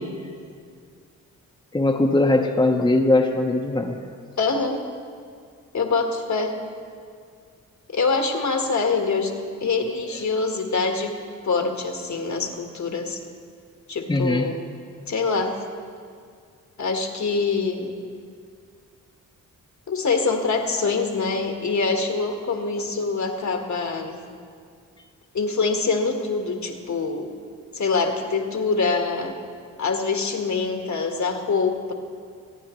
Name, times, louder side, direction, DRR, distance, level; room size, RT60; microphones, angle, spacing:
voice 1, 1.7-4.0 14.1-14.5, left 2 dB, 15° left, 1 dB, 1.0 m, -20 dB
voice 2, 4.4-4.8 5.7-6.6 7.9-9.3 9.6-13.2 13.9-14.5 15.1-15.6 16.8-17.9 19.9-24.2 25.3-27.3 27.7-29.3 29.8-31.9, left 4 dB, 55° left, 3 dB, 1.6 m, -24 dB
24.0 x 9.4 x 3.1 m, 2.2 s
cardioid pair, 60°, 35 cm